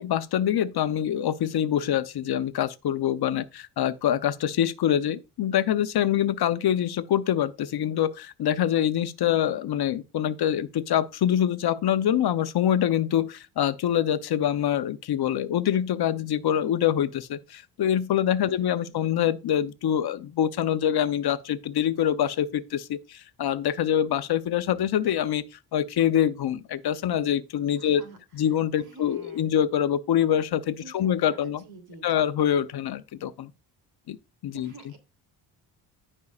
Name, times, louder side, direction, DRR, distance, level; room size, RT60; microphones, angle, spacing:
voice 1, 0.0-25.4 25.7-28.0 28.3-31.6 32.0-33.5 34.1-34.2 34.4-34.7, left 10 dB, 60° left, 0.8 m, -25 dB
voice 2, 18.4-19.0 27.8-28.5 28.8-29.6 30.8-32.3 34.5-35.0, right 3 dB, 55° right, 3.0 m, -49 dB
14.5 x 5.5 x 2.4 m
cardioid pair, 100°, 44 cm